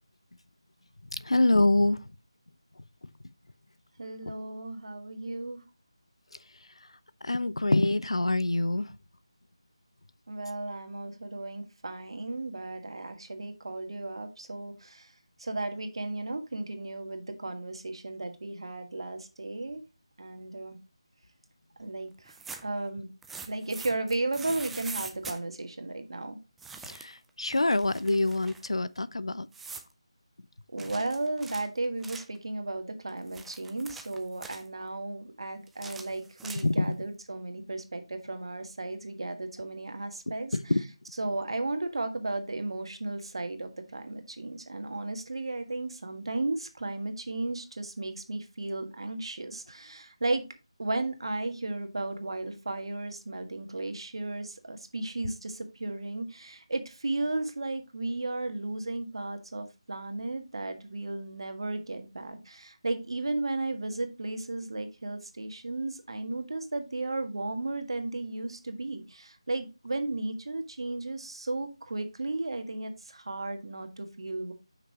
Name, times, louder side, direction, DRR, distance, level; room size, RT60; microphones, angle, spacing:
voice 1, 1.1-2.0 7.2-8.9 26.8-29.5 36.6-36.9 40.3-40.8, left 2 dB, 70° left, 0.6 m, -26 dB
voice 2, 4.0-5.6 10.3-15.1 15.4-19.8 20.2-20.8 21.8-22.4 22.6-23.1 23.4-26.4 30.7-40.6 41.2-50.4 50.8-74.5, right 2 dB, 60° right, 1.5 m, -34 dB
sound 1, 22.2-22.8 23.2-25.4 26.6-27.2 27.5-28.7 29.5-29.9 30.8-32.4 33.1-34.7 35.7-36.9, right 5 dB, 5° right, 0.3 m, -43 dB
8.0 x 5.9 x 2.9 m
figure-of-eight pair, 160°, 3 cm